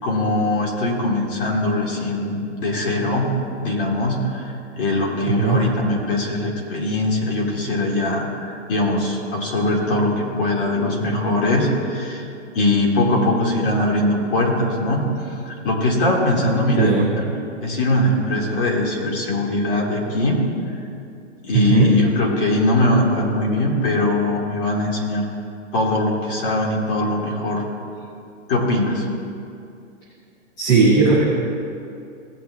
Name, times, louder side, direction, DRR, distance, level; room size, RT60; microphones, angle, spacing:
voice 1, 0.0-3.3 3.6-12.3 12.5-17.3 17.6-20.4 21.4-25.3 25.7-27.6 28.5-29.1, left 1 dB, 45° left, -1 dB, 2.1 m, -21 dB
voice 2, 16.8-17.1 21.5-21.9 30.6-31.2, right 4 dB, 5° left, -10 dB, 0.4 m, -16 dB
16.5 x 8.6 x 2.3 m, 2.5 s
hypercardioid pair, 155°, 38 cm